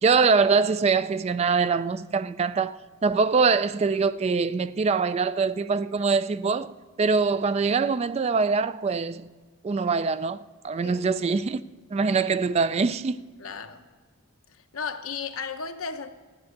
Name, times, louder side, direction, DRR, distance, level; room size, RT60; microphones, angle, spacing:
voice 1, 0.0-6.7 7.0-9.3 9.6-10.4 10.6-11.6 11.9-13.3, right 4 dB, 30° right, 0.3 m, -23 dB
voice 2, 13.4-13.8 14.5-16.1, left 5 dB, 85° left, 0.9 m, -34 dB
14.0 x 9.4 x 6.5 m
head